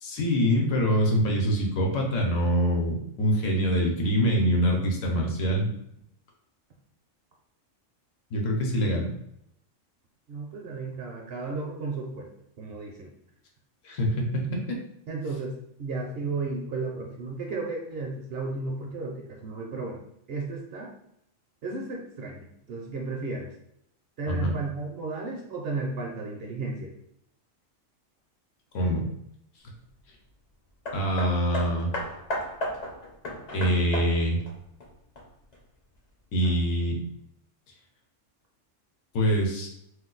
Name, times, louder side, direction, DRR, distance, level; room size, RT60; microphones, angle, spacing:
voice 1, 0.0-5.7 8.3-9.1 13.8-14.5 24.3-24.5 28.7-29.1 30.9-31.9 33.5-34.4 36.3-37.0 39.1-39.7, equal, 75° left, 0 dB, 1.1 m, -24 dB
voice 2, 10.3-13.1 15.1-15.5 15.8-20.0 20.3-20.9 21.6-23.5 24.2-26.9, right 3 dB, 60° right, 0 dB, 0.7 m, -34 dB
Hammer, 30.9-35.6 36.4-36.5, equal, 45° left, 0.6 m, -35 dB
2.6 x 2.2 x 3.7 m, 0.75 s
omnidirectional pair, 1.3 m